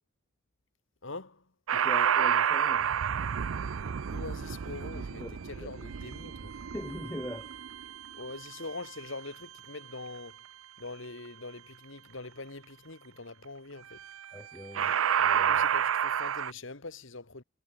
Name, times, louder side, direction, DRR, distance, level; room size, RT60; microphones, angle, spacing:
voice 1, 1.0-1.4 4.1-6.5 8.1-10.4 10.8-14.0 15.5-17.4, left 3 dB, 65° left, 2.0 m, -43 dB
voice 2, 1.7-2.9 4.9-5.4 5.6-5.7 6.7-7.5 14.3-15.6, left 1 dB, 10° left, 1.0 m, -42 dB
sound 1, 1.7-8.9 14.1-14.4 14.7-16.5, right 8 dB, 80° right, 0.5 m, -29 dB
head